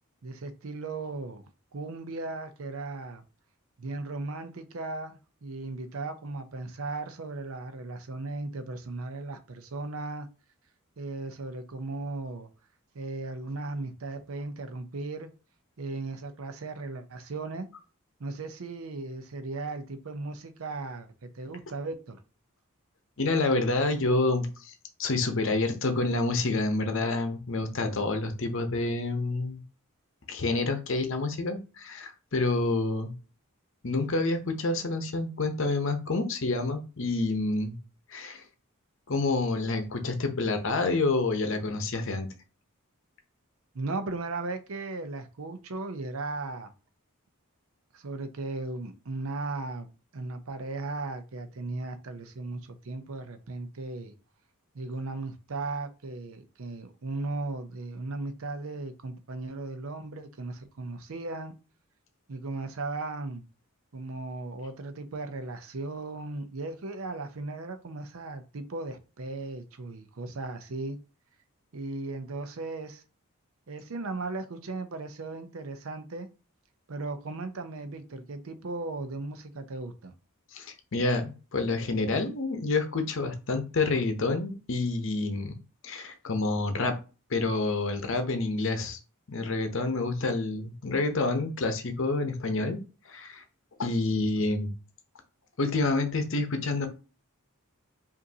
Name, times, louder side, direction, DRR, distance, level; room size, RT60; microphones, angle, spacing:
voice 1, 0.2-1.4 1.7-3.2 3.8-10.3 11.0-12.5 12.9-15.3 15.8-17.7 18.2-22.2 43.7-46.7 47.9-49.9 50.1-54.1 54.7-61.5 62.3-63.4 63.9-71.0 71.7-73.0 73.7-76.3 76.9-80.1, right 3 dB, 70° right, 0.6 m, -36 dB
voice 2, 23.2-24.7 25.0-29.6 30.3-33.1 33.8-37.8 38.1-38.4 39.1-42.3 80.5-85.6 85.8-87.0 87.3-89.0 89.3-92.8 93.1-93.4 93.8-94.7 95.6-96.9, left 3 dB, 60° left, 0.8 m, -28 dB
5.1 x 2.7 x 2.7 m
head